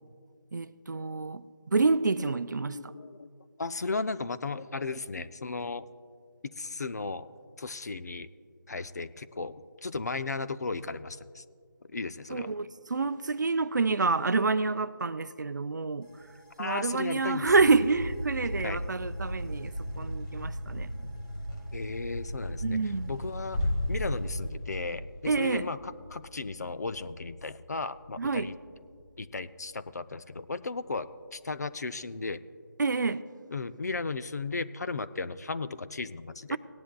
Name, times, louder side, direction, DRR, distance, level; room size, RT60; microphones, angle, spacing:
voice 1, 0.5-1.4 1.7-2.8 12.3-16.1 16.6-21.1 22.6-23.1 25.3-25.7 28.2-28.5 32.8-33.2 36.5-36.6, right 4 dB, 60° right, 0.5 m, -28 dB
voice 2, 2.7-3.3 3.6-5.9 6.6-7.3 7.6-8.3 8.7-11.4 11.9-12.5 16.6-17.5 18.6-18.8 21.7-22.8 23.1-23.6 23.9-28.5 29.2-32.4 33.5-36.6, left 3 dB, 50° left, 0.5 m, -35 dB
sound 1, 16.0-24.5, equal, 90° left, 2.5 m, -38 dB
sound 2, 23.5-29.3 29.5-29.6, left 1 dB, 15° left, 0.7 m, -36 dB
18.5 x 10.0 x 2.3 m
figure-of-eight pair, 165°, 11 cm